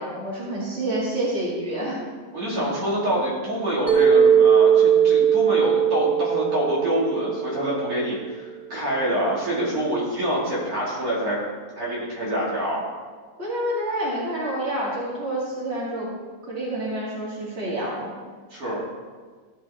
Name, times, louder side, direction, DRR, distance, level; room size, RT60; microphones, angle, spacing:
voice 1, 0.0-2.0 13.4-16.1 16.5-18.1, right 1 dB, 45° right, -6 dB, 2.5 m, -28 dB
voice 2, 2.3-11.4 11.8-12.8 18.5-18.8, right 1 dB, 90° right, -6 dB, 2.9 m, -26 dB
Mallet percussion, 3.9-8.0, right 8 dB, 80° left, 1.6 m, -19 dB
14.0 x 5.0 x 4.3 m, 1.5 s
omnidirectional pair, 1.5 m